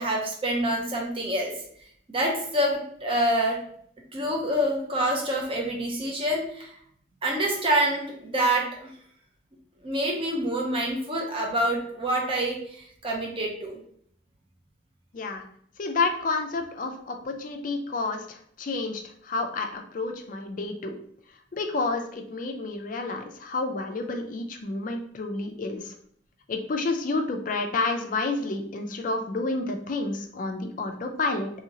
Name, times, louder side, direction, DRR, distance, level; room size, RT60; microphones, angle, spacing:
voice 1, 0.0-1.5 2.1-3.6 4.1-6.7 7.2-8.9 9.8-13.8, right 1 dB, 25° right, -1 dB, 0.6 m, -26 dB
voice 2, 15.1-15.4 15.8-21.0 21.5-25.9 26.5-31.5, left 3 dB, 40° left, 5 dB, 0.4 m, -30 dB
2.8 x 2.7 x 2.8 m, 0.65 s
head